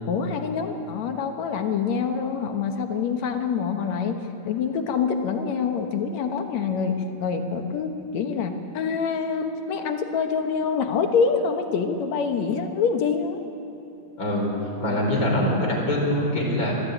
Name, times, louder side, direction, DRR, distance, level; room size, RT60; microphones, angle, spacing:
voice 1, 0.1-4.2 4.5-13.4, left 6 dB, 70° left, 5 dB, 2.5 m, -26 dB
voice 2, 14.2-14.5 14.8-16.7, left 1 dB, 30° left, -1 dB, 4.8 m, -23 dB
23.5 x 14.5 x 9.2 m, 2.8 s
omnidirectional pair, 3.4 m